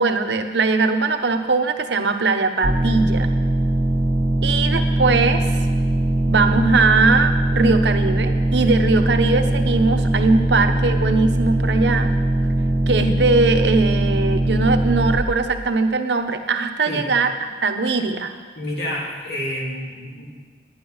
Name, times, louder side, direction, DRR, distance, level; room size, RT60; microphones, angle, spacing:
voice 1, 0.0-3.3 4.4-5.4 6.3-12.2 12.9-18.3, right 3 dB, 80° right, 7 dB, 0.8 m, -20 dB
sound 1, 2.6-15.2, right 1 dB, 5° right, 0.7 m, -20 dB
voice 2, 18.6-20.3, left 1 dB, 70° left, -2 dB, 2.4 m, -28 dB
10.5 x 10.5 x 5.5 m, 1.5 s
head